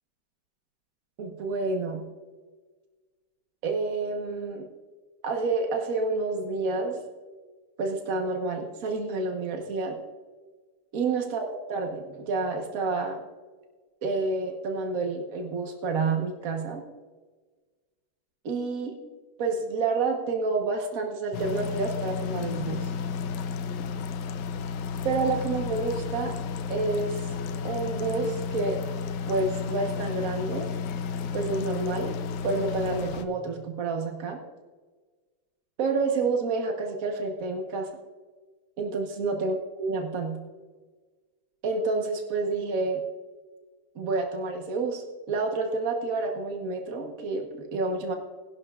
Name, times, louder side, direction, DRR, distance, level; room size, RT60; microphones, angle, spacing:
voice 1, 1.2-2.0 3.6-4.7 5.2-7.0 7.8-10.0 10.9-13.2 14.0-16.8 18.4-19.0 19.4-22.9 25.0-26.3 26.7-27.2 27.6-28.8 29.3-30.7 31.3-32.1 32.4-34.4 35.8-37.9 38.8-40.4 41.6-43.0 43.9-48.1, right 3 dB, 90° right, 3 dB, 0.7 m, -29 dB
sound 1, 21.3-33.2, left 6 dB, 85° left, 2.1 m, -32 dB
21.0 x 11.0 x 2.4 m, 1.4 s
omnidirectional pair, 3.4 m